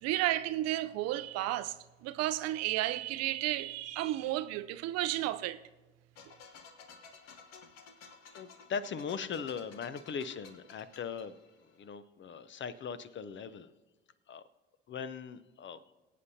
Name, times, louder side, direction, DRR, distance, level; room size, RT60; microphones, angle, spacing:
voice 1, 0.0-1.8 2.0-5.6, right 15 dB, 55° right, 0.5 m, -32 dB
sound 1, 6.1-11.9, left 5 dB, 60° left, 1.2 m, -55 dB
voice 2, 8.3-11.4 11.8-13.7 14.3-14.4 14.9-15.8, left 6 dB, 40° left, 0.7 m, -39 dB
22.5 x 8.3 x 2.8 m
figure-of-eight pair, 50°, 30 cm